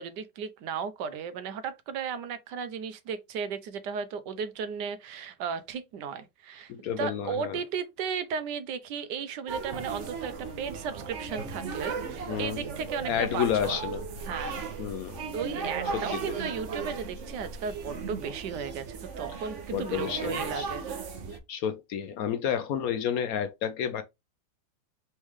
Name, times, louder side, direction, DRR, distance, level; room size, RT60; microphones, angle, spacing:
voice 1, 0.0-13.8 14.3-14.6 15.3-20.8, right 6 dB, 80° right, 1.3 m, -35 dB
voice 2, 6.7-7.6 12.3-12.6 13.1-14.0 14.8-15.2 15.9-16.0 19.7-20.6 21.5-24.0, left 9 dB, 70° left, 0.9 m, -30 dB
sound 1, 9.5-21.4, right 5 dB, 50° right, 1.0 m, -36 dB
4.2 x 3.2 x 3.5 m
omnidirectional pair, 1.8 m